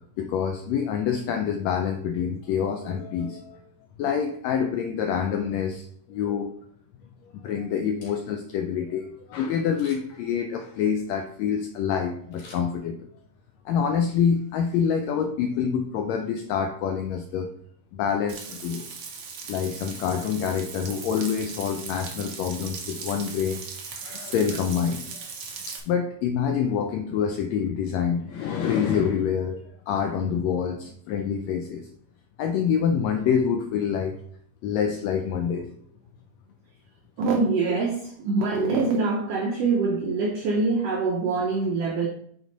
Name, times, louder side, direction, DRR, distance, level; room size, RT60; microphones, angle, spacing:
voice 1, 0.2-3.6 4.0-6.5 7.4-13.0 13.6-17.5 17.9-18.8 19.5-23.6 23.9-25.0 25.7-29.6 29.9-31.9 32.4-34.2 34.6-35.7 37.7-37.8, left 7 dB, 85° left, 1.5 m, -26 dB
Camera, 8.0-8.6 9.7-10.3 12.3-13.3 13.7-13.8, left 2 dB, 70° left, 3.8 m, -51 dB
Frying (food), 18.3-25.8, right 5 dB, 70° right, 1.2 m, -38 dB
voice 2, 37.2-42.1, right 4 dB, 90° right, 1.3 m, -24 dB
6.9 x 4.4 x 3.9 m
omnidirectional pair, 3.7 m